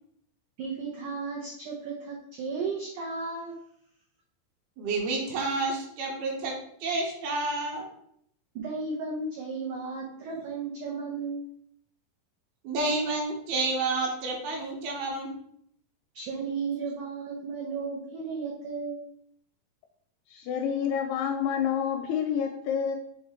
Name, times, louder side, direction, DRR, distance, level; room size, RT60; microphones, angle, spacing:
voice 1, 0.6-3.5 8.5-11.4 16.1-19.0, right 4 dB, 90° right, -3 dB, 1.7 m, -34 dB
voice 2, 4.8-6.5 6.8-7.9 12.6-15.3, right 3 dB, 70° right, -1 dB, 2.8 m, -29 dB
voice 3, 20.3-23.0, left 8 dB, 85° left, 4 dB, 2.4 m, -28 dB
7.3 x 2.9 x 4.4 m, 0.69 s
omnidirectional pair, 4.9 m